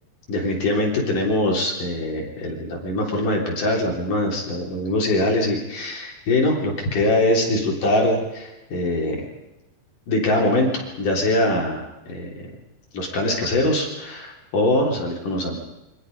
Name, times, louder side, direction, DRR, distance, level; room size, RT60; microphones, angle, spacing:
voice 1, 0.3-9.3 10.1-12.3 12.9-15.6, left 1 dB, 45° left, -1 dB, 4.7 m, -23 dB
28.5 x 25.0 x 5.4 m, 0.98 s
omnidirectional pair, 5.3 m